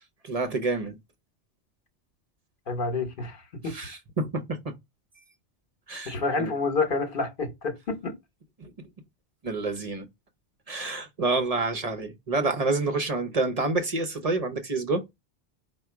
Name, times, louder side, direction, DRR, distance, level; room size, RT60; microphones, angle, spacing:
voice 1, 0.2-1.0 3.6-4.6 5.9-6.5 8.6-8.7 9.4-10.1 10.7-15.0, right 3 dB, 40° right, 0.6 m, -28 dB
voice 2, 2.7-3.8 6.1-8.1, left 3 dB, 50° left, 1.1 m, -29 dB
4.8 x 2.2 x 4.4 m
omnidirectional pair, 1.2 m